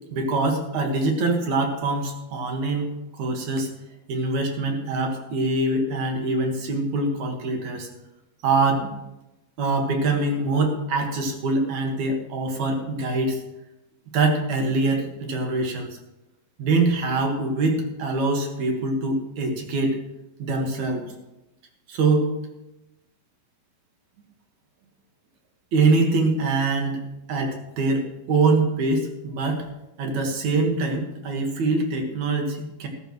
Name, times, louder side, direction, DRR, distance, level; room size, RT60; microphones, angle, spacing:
voice 1, 0.1-3.7 4.1-7.9 8.4-8.9 9.6-13.4 14.1-16.0 16.6-20.0 20.4-21.0 21.9-22.3 25.7-27.0 27.3-29.7 30.0-32.9, right 3 dB, 60° right, 3 dB, 2.8 m, -24 dB
13.5 x 13.5 x 3.1 m, 0.94 s
omnidirectional pair, 3.9 m